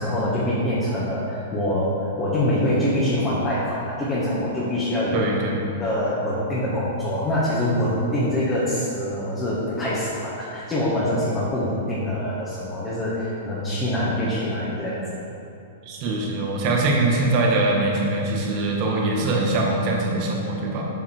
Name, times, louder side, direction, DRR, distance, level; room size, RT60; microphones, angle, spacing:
voice 1, 0.0-5.3 5.8-15.0, left 1 dB, 20° left, -8 dB, 1.7 m, -24 dB
voice 2, 5.1-5.7 15.8-20.9, right 2 dB, 45° right, -1 dB, 1.6 m, -22 dB
7.3 x 5.9 x 4.6 m, 2.7 s
hypercardioid pair, 110°, 0 cm